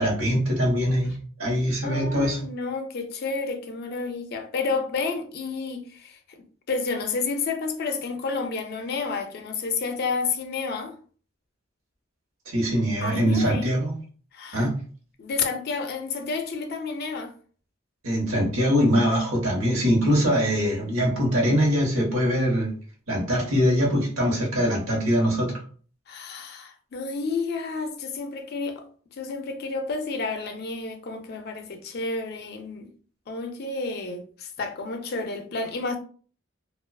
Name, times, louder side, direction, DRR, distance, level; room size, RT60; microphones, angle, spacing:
voice 1, 0.0-2.4 12.5-13.9 14.5-14.7 18.0-22.7 23.1-25.6, equal, 85° right, 1.0 m, -23 dB
voice 2, 1.8-11.0 13.0-13.7 14.3-14.7 15.2-17.3 26.1-28.8 29.1-32.9 33.3-36.0, left 4 dB, 50° left, 0.4 m, -30 dB
2.3 x 2.3 x 2.2 m
head